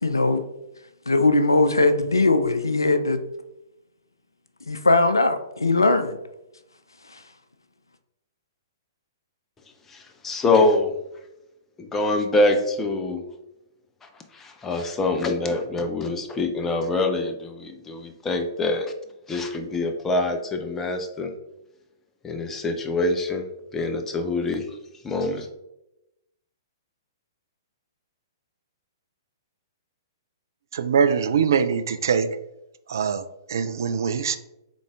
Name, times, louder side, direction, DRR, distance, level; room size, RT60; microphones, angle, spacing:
voice 1, 0.0-0.4 1.1-3.2 4.7-6.2 7.1-7.2, left 2 dB, 85° left, 10 dB, 0.4 m, -20 dB
voice 2, 9.9-10.9 11.8-13.2 14.0-18.9 19.3-21.3 22.2-23.5 23.7-24.7 25.0-25.5, left 2 dB, 15° left, 5 dB, 0.6 m, -25 dB
voice 3, 30.7-32.3 32.9-34.4, right 6 dB, 60° right, 11 dB, 0.3 m, -23 dB
3.9 x 3.5 x 3.4 m, 0.88 s
figure-of-eight pair, 115°, 2 cm